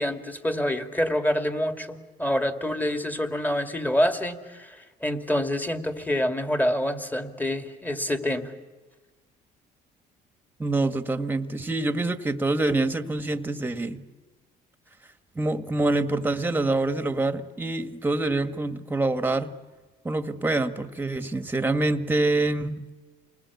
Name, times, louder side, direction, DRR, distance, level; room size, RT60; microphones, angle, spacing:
voice 1, 0.0-8.5, left 1 dB, 10° left, 6 dB, 2.4 m, -27 dB
voice 2, 10.6-14.0 15.4-19.5 20.0-22.8, right 2 dB, 10° right, 9 dB, 1.7 m, -26 dB
28.5 x 20.5 x 8.4 m, 1.3 s
cardioid pair, 110°, 17 cm